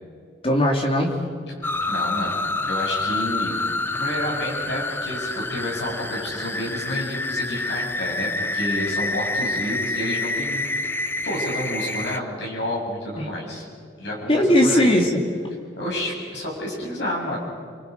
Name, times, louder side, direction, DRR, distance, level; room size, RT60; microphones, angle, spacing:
voice 1, 0.4-1.2 13.2-13.3 14.3-15.1, left 1 dB, 30° left, 1 dB, 2.9 m, -18 dB
voice 2, 1.6-2.4 2.6-3.6 3.9-10.9 11.2-13.7 14.0-14.9 15.8-17.4, left 1 dB, 70° left, -2 dB, 7.6 m, -30 dB
sound 1, 1.6-12.2, left 2 dB, 10° left, 0.6 m, -27 dB
30.0 x 24.0 x 5.4 m, 2.2 s
head